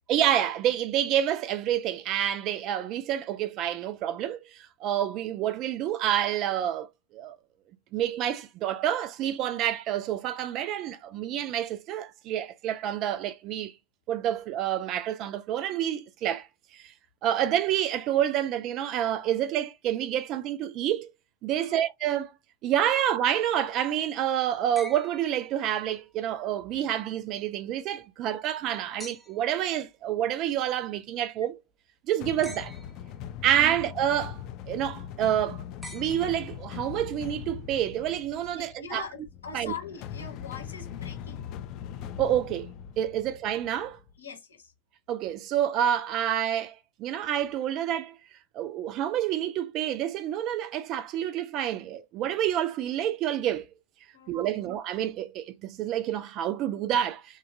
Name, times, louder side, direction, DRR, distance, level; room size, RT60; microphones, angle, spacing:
voice 1, 0.1-6.9 7.1-7.4 7.9-13.7 14.1-16.5 16.7-16.8 17.2-21.1 21.4-22.3 22.6-31.6 32.1-32.7 33.4-34.4 34.7-35.6 35.9-39.0 39.5-39.7 42.2-42.7 43.0-44.0 45.1-48.1 48.5-53.7 54.3-57.4, right 11 dB, 35° right, 0.4 m, -28 dB
sound 1, 24.8-26.1 29.0-29.6 32.4-33.2 35.8-36.9 38.4-38.5, equal, 5° right, 0.6 m, -47 dB
sound 2, 32.2-44.1, left 9 dB, 40° left, 0.4 m, -41 dB
voice 2, 38.5-41.5 43.1-43.2 44.2-44.7 54.1-54.7, left 4 dB, 70° left, 0.9 m, -42 dB
3.0 x 2.3 x 2.6 m
figure-of-eight pair, 90°, 0 cm